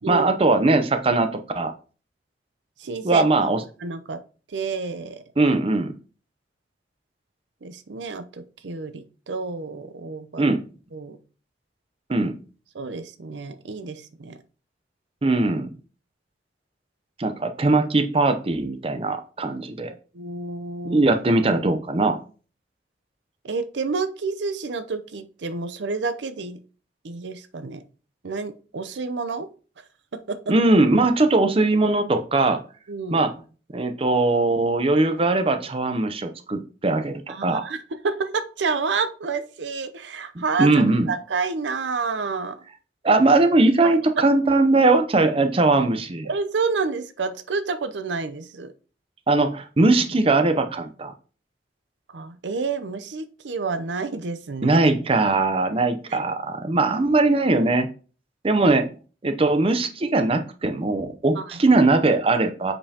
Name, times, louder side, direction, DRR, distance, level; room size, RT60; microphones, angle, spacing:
voice 1, 0.1-1.7 3.0-3.6 5.4-5.9 10.4-10.6 12.1-12.4 15.2-15.7 17.2-19.9 20.8-22.2 30.5-32.6 33.1-33.3 33.7-37.6 40.6-41.1 43.0-46.3 49.3-51.1 54.6-57.9 58.4-58.9 59.2-62.7, right 2 dB, 30° right, 8 dB, 0.6 m, -20 dB
voice 2, 2.8-3.2 3.8-4.2 4.5-5.2 7.6-10.4 10.9-11.2 12.7-14.4 19.9-21.0 23.4-26.6 27.0-27.8 28.2-29.5 30.3-30.4 32.9-33.2 37.3-37.8 38.0-42.6 46.3-48.7 52.1-54.8 61.4-61.6, right 4 dB, 85° right, 11 dB, 0.6 m, -29 dB
7.0 x 5.3 x 2.8 m, 0.37 s
head